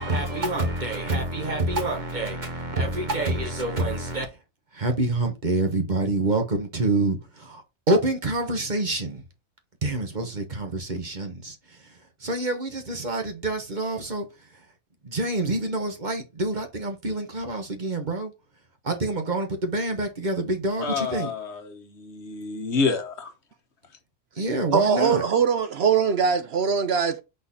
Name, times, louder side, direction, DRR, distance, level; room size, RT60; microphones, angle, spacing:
voice 1, 0.0-4.3 4.7-9.2 9.8-11.9 12.2-14.3 15.0-18.3 18.8-21.3 24.4-25.2, right 2 dB, 40° right, 1.3 m, -27 dB
voice 2, 20.8-23.3, left 4 dB, 60° left, 1.4 m, -28 dB
voice 3, 24.7-27.2, right 6 dB, 60° right, 0.8 m, -22 dB
6.1 x 4.0 x 4.2 m
omnidirectional pair, 1.3 m